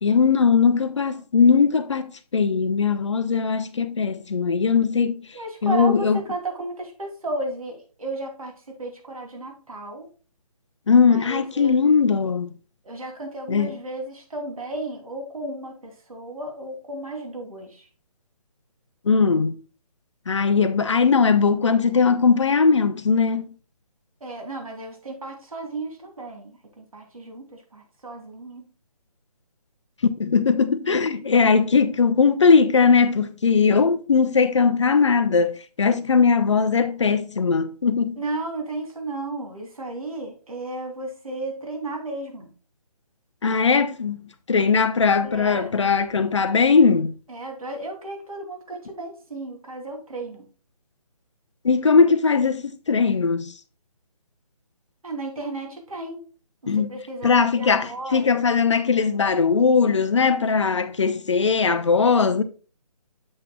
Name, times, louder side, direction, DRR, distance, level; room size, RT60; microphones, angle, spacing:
voice 1, 0.0-5.2 5.6-6.2 10.9-12.5 13.5-13.8 19.1-19.5 20.3-23.4 30.1-38.2 43.4-47.1 51.6-53.5 56.7-62.4, left 5 dB, 45° left, 0.8 m, -19 dB
voice 2, 5.3-8.5 8.8-10.1 11.1-11.8 12.8-17.8 24.2-28.6 38.2-42.5 45.2-45.8 47.3-50.5 55.0-56.2 56.9-57.3 57.6-58.4, right 2 dB, 60° right, 2.9 m, -34 dB
8.1 x 7.6 x 2.3 m
figure-of-eight pair, 145°, 20 cm